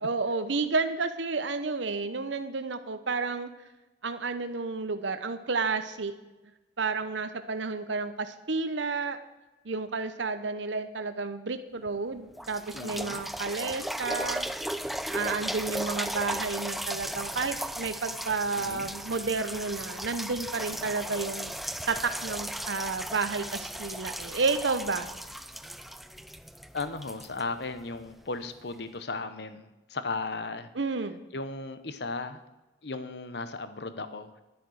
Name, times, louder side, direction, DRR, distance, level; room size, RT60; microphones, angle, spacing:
voice 1, 0.0-3.5 4.0-6.1 6.8-9.2 9.6-14.4 15.1-25.1 30.7-31.2, right 4 dB, 75° right, 10 dB, 0.9 m, -31 dB
sound 1, 11.9-12.0 12.4-28.1 28.7-28.8, equal, ahead, 0.3 m, -36 dB
voice 2, 12.7-13.2 18.6-18.9 20.7-20.9 26.7-30.7 31.3-32.4 32.8-34.3, left 3 dB, 60° left, 11 dB, 0.9 m, -36 dB
11.0 x 10.5 x 6.5 m, 1.1 s
head